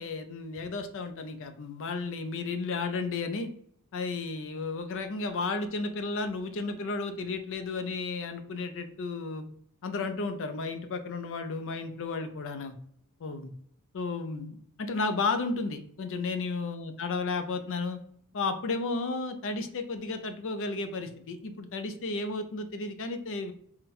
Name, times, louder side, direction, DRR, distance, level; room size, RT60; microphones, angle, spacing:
voice 1, 0.0-3.5 3.9-9.4 9.8-12.7 13.2-13.5 13.9-18.0 18.3-23.5, left 3 dB, 60° left, 8 dB, 0.5 m, -33 dB
3.8 x 2.1 x 4.2 m, 0.64 s
head